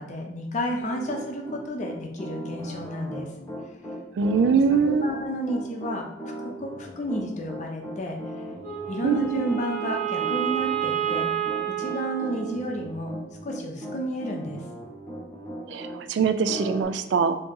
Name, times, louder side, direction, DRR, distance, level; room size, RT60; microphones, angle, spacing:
voice 1, 0.0-3.3 4.9-6.0 6.4-8.4 8.9-11.3 11.8-14.6, equal, 40° left, 2 dB, 0.6 m, -31 dB
Piano, 0.8-16.0 16.5-16.8, equal, 15° left, 0.9 m, -38 dB
voice 2, 4.2-5.1 9.0-9.6 15.7-17.4, right 5 dB, 75° right, 9 dB, 0.3 m, -23 dB
Wind instrument woodwind instrument, 8.6-13.0, right 10 dB, 40° right, 1.1 m, -30 dB
2.9 x 2.8 x 3.5 m, 0.88 s
head